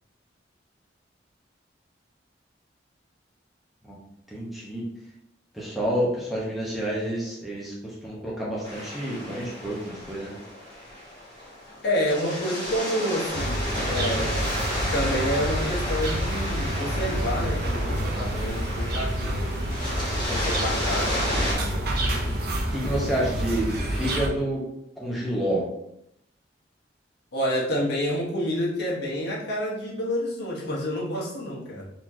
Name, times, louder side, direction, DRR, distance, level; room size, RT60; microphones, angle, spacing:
voice 1, 4.3-4.8 5.5-10.4 22.7-24.6 25.0-25.7, right 1 dB, ahead, -6 dB, 0.8 m, -29 dB
sound 1, 8.6-21.5, left 1 dB, 25° left, 1.3 m, -32 dB
voice 2, 11.8-13.6 13.9-14.5 14.9-19.5 20.3-22.3 27.3-31.8, equal, 65° left, -5 dB, 1.1 m, -29 dB
sound 2, 13.3-24.3, right 1 dB, 55° right, 0.6 m, -28 dB
4.1 x 3.0 x 2.7 m, 0.79 s
head